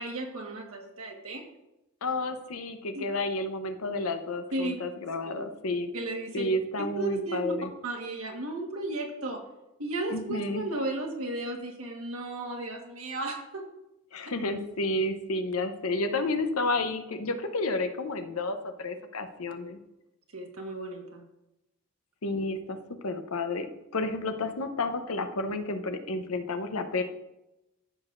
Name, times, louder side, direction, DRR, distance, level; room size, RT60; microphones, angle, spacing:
voice 1, 0.0-1.4 2.9-3.0 4.5-4.8 5.3-5.4 5.9-6.4 6.9-7.5 7.8-9.4 9.8-13.6 20.3-21.2, right 2 dB, 75° right, 2 dB, 1.5 m, -34 dB
voice 2, 2.0-5.9 6.3-7.7 10.1-10.6 14.1-19.8 22.2-22.8 23.0-23.7 23.9-27.0, left 2 dB, 80° left, 7 dB, 0.8 m, -31 dB
14.0 x 6.3 x 2.6 m, 0.92 s
head